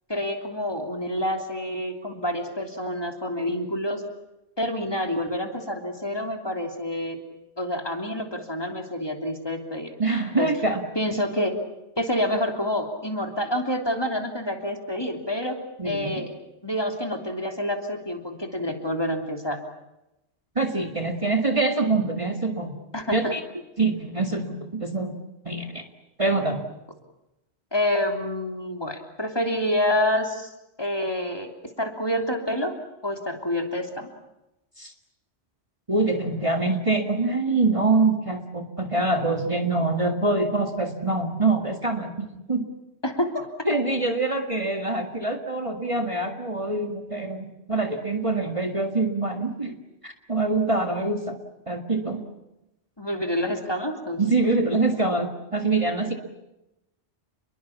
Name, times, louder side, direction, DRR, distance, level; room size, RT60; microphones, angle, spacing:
voice 1, 0.1-4.0 4.6-7.2 7.6-9.9 10.4-10.5 10.9-11.6 12.0-15.6 15.8-19.6 22.9-23.3 27.7-30.5 30.8-31.5 31.8-32.7 33.0-34.1 43.0-43.5 53.0-54.2, left 1 dB, 20° left, 4 dB, 3.2 m, -28 dB
voice 2, 10.0-10.8 15.8-16.2 20.6-22.8 23.1-23.4 23.8-25.2 25.5-25.8 26.2-26.6 34.8-34.9 35.9-42.7 43.7-49.8 50.0-51.4 51.7-52.2 54.2-56.1, right 3 dB, 30° right, 4 dB, 2.1 m, -25 dB
29.5 x 22.0 x 7.3 m, 0.92 s
omnidirectional pair, 1.1 m